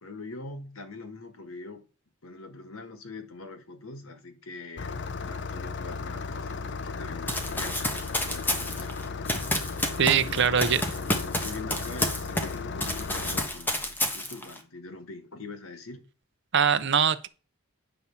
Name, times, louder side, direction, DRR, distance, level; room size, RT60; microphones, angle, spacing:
voice 1, 0.0-1.9 2.2-7.8 8.3-9.1 10.1-16.1, left 3 dB, 90° left, 1.6 m, -43 dB
Engine starting, 4.8-13.4, left 4 dB, 55° left, 0.6 m, -35 dB
Run, 7.3-12.5 12.8-14.6, left 1 dB, 10° left, 1.2 m, -30 dB
voice 2, 10.0-10.8 16.5-17.3, right 7 dB, 60° right, 0.7 m, -22 dB
9.6 x 4.1 x 7.0 m
head